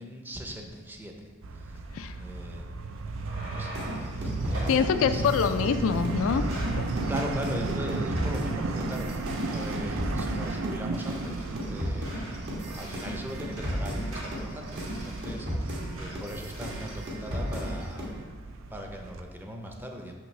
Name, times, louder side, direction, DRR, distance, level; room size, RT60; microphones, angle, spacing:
voice 1, 0.0-1.8 2.1-2.7 3.3-5.3 7.1-9.1 9.5-20.1, equal, 10° right, 2 dB, 0.6 m, -40 dB
sound 1, 1.4-19.2, right 3 dB, 70° right, 0.5 m, -35 dB
sound 2, 3.0-4.2 4.5-4.8 5.4-6.1 6.4-6.8 7.1-7.3 7.6-7.8 8.1-8.3 8.8-9.0 9.3-10.0 10.4-10.6 10.9-12.4 12.7-13.2 13.4-13.8 14.1-15.5 16.0-16.2 16.5-17.0 17.3-17.7, right 1 dB, 90° right, 1.9 m, -44 dB
sound 3, 3.7-10.8 11.1-18.2, equal, 55° right, 1.2 m, -35 dB
voice 2, 4.7-6.5 6.7-6.9, left 6 dB, 70° left, 9 dB, 0.3 m, -25 dB
6.2 x 5.9 x 3.2 m, 1.5 s
head